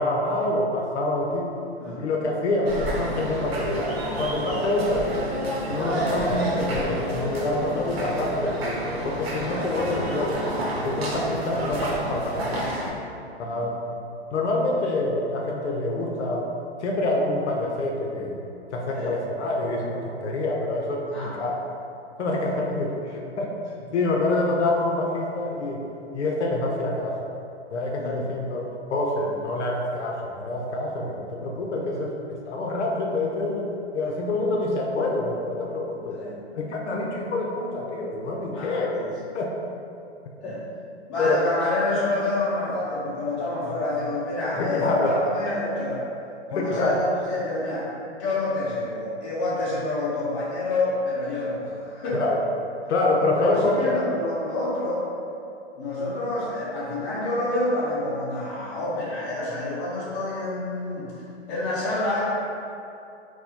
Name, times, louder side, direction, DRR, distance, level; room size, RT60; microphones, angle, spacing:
voice 1, 0.0-1.5 2.0-5.1 5.7-10.4 10.8-12.8 13.4-13.8 14.3-16.5 16.8-18.4 18.7-21.6 22.2-23.5 23.9-25.8 26.1-27.2 27.7-32.2 32.5-36.2 36.5-39.0 39.3-39.6 40.4-40.6 41.2-41.4 44.5-45.2 46.5-47.0 52.1-52.4 52.9-54.0, left 2 dB, 75° left, -1 dB, 0.6 m, -26 dB
sound 1, 2.6-12.9, right 1 dB, 60° right, 0.9 m, -29 dB
voice 2, 21.1-21.4 28.0-28.2 36.1-36.4 38.5-39.1 40.4-40.6 41.1-46.1 46.5-52.2 53.4-55.1 55.7-61.1 61.5-62.2, left 2 dB, 25° left, -8 dB, 0.8 m, -28 dB
4.6 x 2.1 x 2.8 m, 2.7 s
hypercardioid pair, 155°, 35 cm